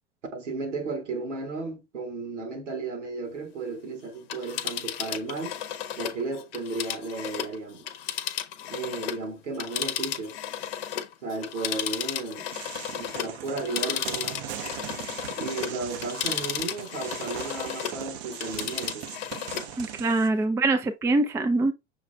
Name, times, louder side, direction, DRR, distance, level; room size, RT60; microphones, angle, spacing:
voice 1, 0.3-5.6 6.0-7.9 8.7-10.4 11.2-12.5 12.9-14.4 15.4-19.1, right 3 dB, 75° right, 1.6 m, -34 dB
Telephone, 4.2-9.2 9.5-18.0 18.3-19.7 20.1-20.2, left 10 dB, 55° left, 0.8 m, -34 dB
sound 1, 12.5-20.3, right 9 dB, 60° right, 0.8 m, -39 dB
voice 2, 19.8-21.7, right 2 dB, 10° right, 0.4 m, -24 dB
6.4 x 2.4 x 3.3 m
figure-of-eight pair, 85°, 36 cm